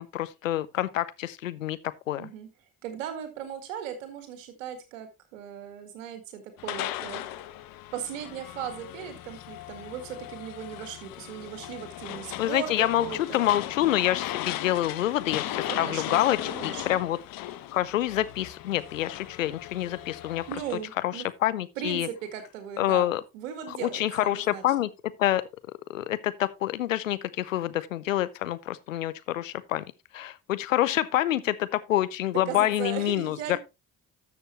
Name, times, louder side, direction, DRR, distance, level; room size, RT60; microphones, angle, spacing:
voice 1, 0.0-1.8 2.1-2.3 12.4-17.2 17.7-20.4 21.0-22.1 22.8-23.2 23.7-24.9 25.2-25.4 25.9-29.8 30.1-33.6, left 13 dB, 90° left, 0.6 m, -27 dB
voice 2, 2.2-2.5 2.8-7.2 7.9-13.4 15.5-17.0 20.5-21.3 21.8-24.9 32.5-33.6, right 9 dB, 80° right, 1.8 m, -38 dB
sound 1, 6.6-20.8, left 14 dB, 65° left, 1.0 m, -37 dB
12.5 x 6.7 x 3.0 m
figure-of-eight pair, 40°, 38 cm